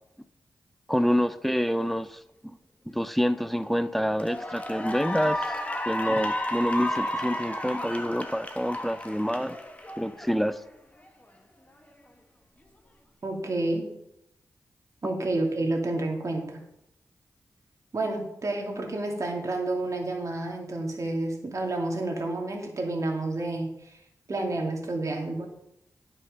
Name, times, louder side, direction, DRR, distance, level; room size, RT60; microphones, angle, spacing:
voice 1, 0.9-2.2 2.9-5.6 5.9-9.6 10.0-10.6, equal, ahead, 0.6 m, -27 dB
Cheering / Applause, 3.4-3.6 4.1-10.6, left 1 dB, 20° left, 1.5 m, -32 dB
voice 2, 13.2-13.8 15.0-16.6 17.9-23.7 24.3-25.5, right 2 dB, 50° right, 2.5 m, -29 dB
9.5 x 5.6 x 6.5 m
cardioid pair, 55°, 7 cm